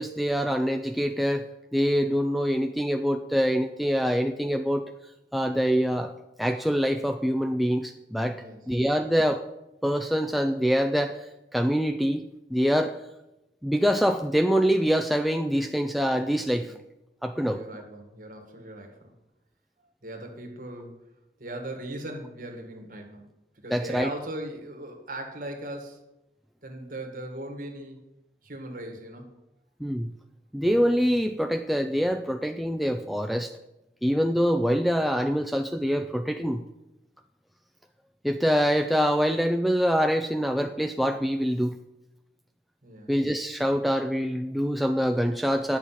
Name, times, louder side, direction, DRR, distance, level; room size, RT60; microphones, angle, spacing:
voice 1, 0.0-1.5 1.7-4.9 5.3-6.1 6.4-9.4 9.8-13.0 13.6-16.7 17.2-17.6 23.7-24.1 29.8-30.1 30.5-33.5 34.0-36.6 38.2-41.8 43.1-45.8, equal, ahead, 6 dB, 0.3 m, -25 dB
voice 2, 17.4-19.1 20.0-21.0 21.4-26.0 26.6-28.0 28.4-29.4 42.8-43.1, right 1 dB, 50° right, 3 dB, 1.9 m, -39 dB
9.8 x 7.0 x 5.9 m, 0.94 s
head